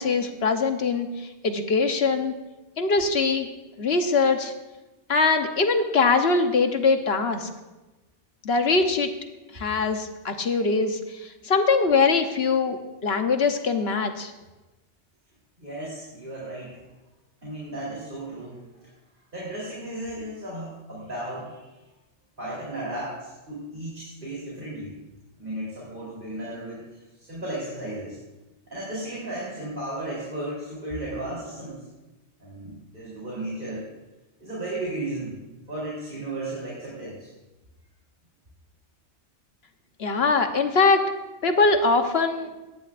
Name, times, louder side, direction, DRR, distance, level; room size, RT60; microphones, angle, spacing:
voice 1, 0.0-2.3 2.8-3.5 3.8-4.5 5.1-7.5 8.4-9.1 9.5-12.8 13.0-14.3 40.0-41.0 41.4-42.5, left 4 dB, 65° left, 6 dB, 1.2 m, -22 dB
voice 2, 15.6-16.8 17.4-18.9 19.3-21.8 22.4-24.9 25.4-26.8 27.2-28.2 28.7-31.8 32.4-33.8 34.4-35.4 35.7-37.3, right 1 dB, 45° right, -7 dB, 3.8 m, -34 dB
19.0 x 14.5 x 2.5 m, 1.1 s
omnidirectional pair, 1.2 m